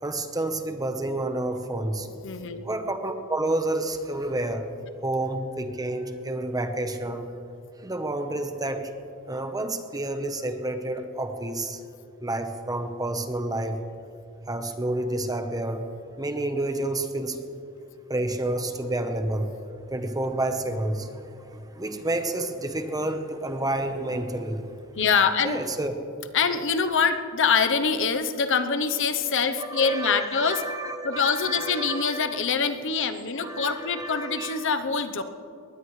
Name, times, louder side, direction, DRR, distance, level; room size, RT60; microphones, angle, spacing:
voice 1, 0.0-2.1 2.6-4.7 5.0-7.3 7.8-8.9 9.3-11.8 12.2-13.8 14.5-15.9 16.2-17.4 18.1-19.5 19.9-24.7 25.1-25.9 29.6-32.5 33.4-34.7, right 2 dB, 20° right, 7 dB, 1.0 m, -29 dB
voice 2, 2.2-2.7 25.0-25.6 26.3-30.6 31.0-35.2, left 5 dB, 60° left, 9 dB, 0.9 m, -24 dB
21.5 x 19.0 x 3.2 m, 2.6 s
head